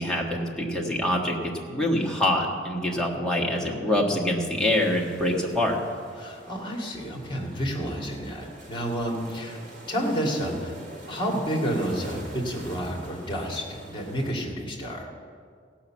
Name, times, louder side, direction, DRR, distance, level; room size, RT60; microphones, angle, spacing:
voice 1, 0.0-5.8, left 1 dB, 5° left, -2 dB, 1.5 m, -25 dB
sound 1, 4.6-14.3, right 1 dB, 45° right, 2.1 m, -45 dB
voice 2, 6.2-9.6 9.9-10.7 11.1-15.1, equal, 25° left, 0 dB, 2.1 m, -30 dB
16.5 x 5.7 x 7.3 m, 2.1 s
head